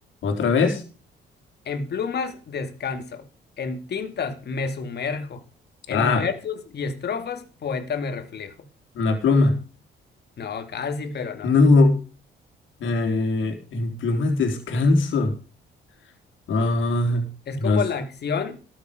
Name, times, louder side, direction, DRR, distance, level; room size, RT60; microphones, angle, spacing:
voice 1, 0.2-0.8 5.9-6.3 9.0-9.6 11.4-12.0 12.8-15.3 16.5-17.3 17.6-17.8, left 3 dB, 75° left, 3.6 m, -20 dB
voice 2, 1.7-3.2 3.6-5.4 5.9-8.5 10.4-11.6 17.5-18.6, left 5 dB, 55° left, 2.6 m, -29 dB
13.5 x 9.4 x 5.2 m
cardioid pair, 90°, 20 cm